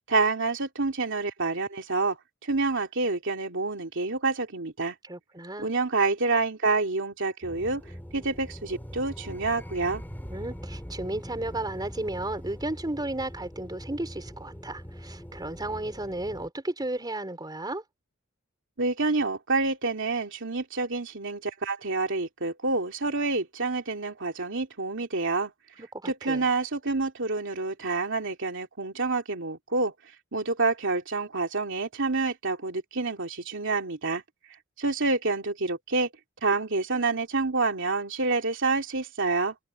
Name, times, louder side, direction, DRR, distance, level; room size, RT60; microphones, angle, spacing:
voice 1, 0.0-2.2 2.4-4.9 5.6-7.8 8.1-10.0 18.8-25.5 26.0-29.9 30.3-34.2 34.8-36.1 36.4-39.5, right 3 dB, 60° right, 2.9 m, -28 dB
voice 2, 5.0-5.7 10.3-17.8 25.8-26.5, right 1 dB, 20° right, 3.9 m, -34 dB
sound 1, 7.4-16.5, equal, 10° left, 2.7 m, -42 dB
head